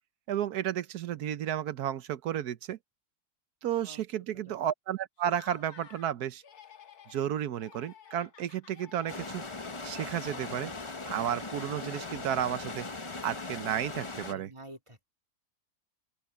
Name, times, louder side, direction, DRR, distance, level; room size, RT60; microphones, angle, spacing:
voice 1, 0.3-2.8 3.6-6.4 7.1-9.4 9.8-10.7 11.1-12.9 13.2-14.5, right 10 dB, 80° right, 1.4 m, -32 dB
Laughter, 5.2-6.1 6.4-7.3 7.6-10.9, left 7 dB, 75° left, 2.0 m, -54 dB
sound 1, 9.1-14.3, left 3 dB, 20° left, 1.0 m, -39 dB
voice 2, 14.3-15.1, right 1 dB, 20° right, 2.3 m, -49 dB
open air
omnidirectional pair, 1.6 m